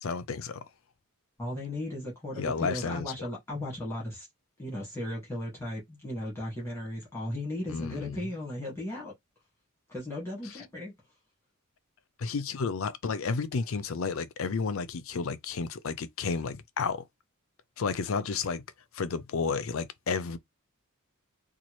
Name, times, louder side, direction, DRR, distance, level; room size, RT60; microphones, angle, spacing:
voice 1, 0.0-0.6 2.4-3.1 7.7-8.2 12.2-17.0 17.8-18.6 18.9-20.4, left 5 dB, 70° left, 0.5 m, -31 dB
voice 2, 1.4-4.3 4.6-9.1 9.9-10.9, left 1 dB, 10° left, 1.8 m, -36 dB
4.2 x 2.3 x 3.1 m
head